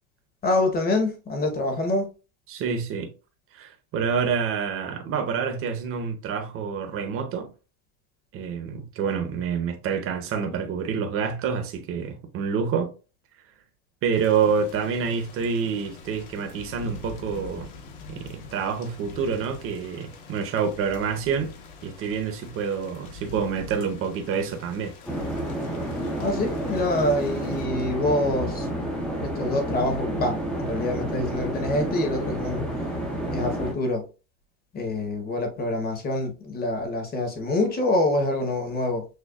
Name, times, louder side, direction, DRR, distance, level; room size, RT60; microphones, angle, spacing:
voice 1, 0.4-2.1 26.2-28.9 29.2-32.6 33.3-34.0 34.7-39.0, left 2 dB, 20° left, 0.9 m, -26 dB
voice 2, 2.5-3.1 3.5-7.5 8.3-12.9 14.0-17.7 18.1-21.5 21.8-24.9, right 6 dB, 30° right, 0.7 m, -27 dB
Thunder / Rain, 14.1-27.6, left 4 dB, 60° left, 1.2 m, -44 dB
sound 1, 25.1-33.7, right 1 dB, ahead, 0.4 m, -30 dB
6.3 x 2.2 x 2.3 m
cardioid pair, 160°, 43 cm